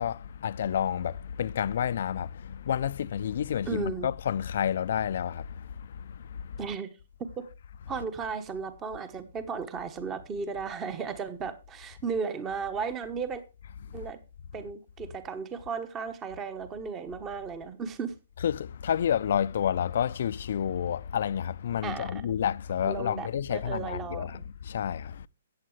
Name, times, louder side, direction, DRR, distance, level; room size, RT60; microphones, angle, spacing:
voice 1, 0.0-6.6 13.9-14.0 18.4-25.3, left 9 dB, 60° left, 0.5 m, -30 dB
voice 2, 3.7-4.1 6.6-6.9 7.4-7.5 7.9-13.4 13.9-14.2 14.5-18.1 21.8-22.2 22.8-24.3, right 5 dB, 20° right, 1.1 m, -35 dB
13.5 x 8.7 x 3.2 m
hypercardioid pair, 140°, 0 cm